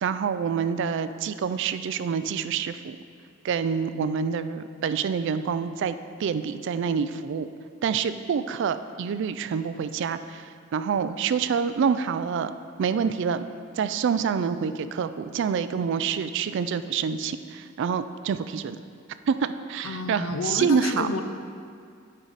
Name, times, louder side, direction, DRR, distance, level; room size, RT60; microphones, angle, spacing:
voice 1, 0.0-3.0 3.4-7.5 7.8-12.5 12.8-13.4 13.7-18.8 19.3-21.1, right 6 dB, 60° right, 12 dB, 0.3 m, -27 dB
voice 2, 19.8-21.2, left 3 dB, 85° left, 7 dB, 0.6 m, -30 dB
9.1 x 5.5 x 4.0 m, 2.2 s
head